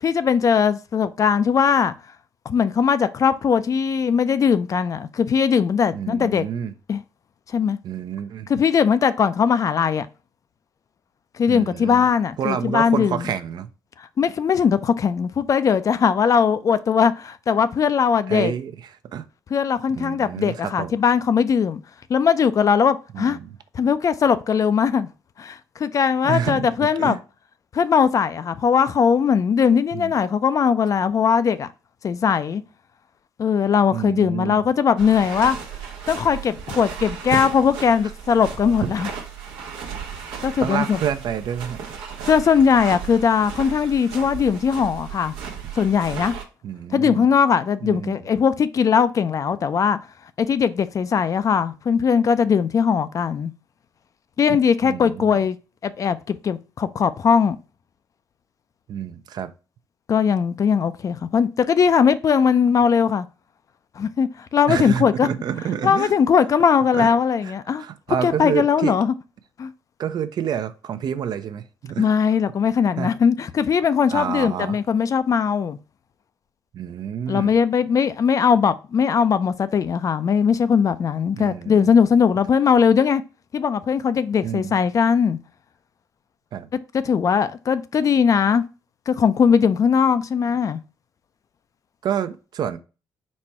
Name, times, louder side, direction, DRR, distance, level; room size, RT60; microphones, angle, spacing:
voice 1, 0.0-1.9 2.5-6.4 6.9-7.0 7.5-7.8 8.5-10.1 11.4-13.3 14.0-18.5 19.5-21.8 22.1-23.4 23.7-25.1 25.4-27.2 27.7-31.7 32.0-32.6 33.4-35.6 36.1-39.1 40.4-41.0 42.2-45.3 45.7-46.3 46.9-50.0 50.4-53.5 54.4-55.6 55.8-57.6 60.1-63.3 64.0-65.3 65.8-67.8 68.2-69.1 69.6-69.7 72.0-75.8 77.3-83.2 83.5-85.4 86.9-88.6 89.1-90.8, left 6 dB, 45° left, 0.4 m, -19 dB
voice 2, 5.9-6.7 7.8-8.5 11.5-12.0 12.4-13.7 18.3-18.7 19.1-19.2 20.0-20.9 23.1-23.5 26.2-27.2 29.9-30.1 33.9-34.6 37.3-37.4 38.8-38.9 40.6-41.8 46.6-47.3 47.8-48.2 54.5-54.6 54.8-55.4 58.9-59.5 64.7-66.1 66.9-67.1 67.4-68.9 70.0-72.1 73.0-73.1 74.1-74.8 76.7-77.5 81.3-81.9 84.4-84.7 86.5-86.7 92.0-92.8, right 8 dB, 60° right, 0.5 m, -28 dB
sound 1, 35.0-46.4, right 7 dB, 90° right, 0.9 m, -35 dB
4.2 x 2.2 x 4.5 m
cardioid pair, 80°, 8 cm